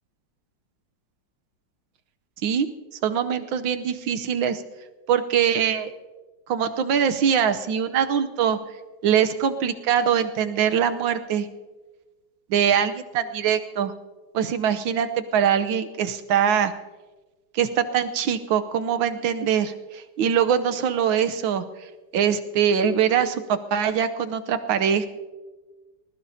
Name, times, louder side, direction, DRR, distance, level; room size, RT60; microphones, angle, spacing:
voice 1, 3.0-4.6 5.1-5.9 6.5-8.6 9.0-11.5 12.5-13.9 14.3-16.7 17.5-21.6 22.1-25.1, right 8 dB, 85° right, 9 dB, 1.6 m, -23 dB
24.5 x 20.5 x 2.8 m, 1.3 s
omnidirectional pair, 2.1 m